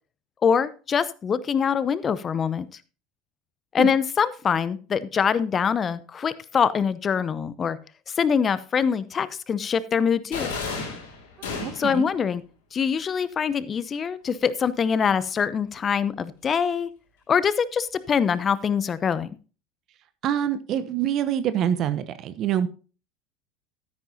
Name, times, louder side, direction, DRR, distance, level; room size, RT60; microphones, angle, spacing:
voice 1, 0.4-2.7 3.7-7.8 8.1-10.5 11.8-12.4 12.7-16.9 17.3-19.3, left 6 dB, 30° left, 17 dB, 0.8 m, -24 dB
sound 1, 10.3-12.1, left 4 dB, 70° left, 3.9 m, -32 dB
voice 2, 11.5-12.1 20.2-22.7, right 10 dB, 45° right, 12 dB, 0.9 m, -25 dB
13.0 x 10.0 x 2.8 m, 0.35 s
hypercardioid pair, 75°, 0 cm